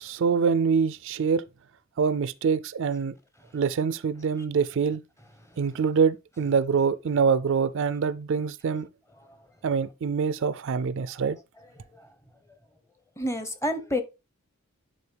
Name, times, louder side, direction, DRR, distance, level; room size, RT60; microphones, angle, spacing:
voice 1, 0.0-1.4 2.0-3.1 3.5-5.0 5.6-8.9 9.6-11.4, right 6 dB, 60° right, 0.4 m, -25 dB
voice 2, 13.2-14.0, left 1 dB, 10° left, 0.8 m, -28 dB
9.7 x 4.3 x 3.3 m
head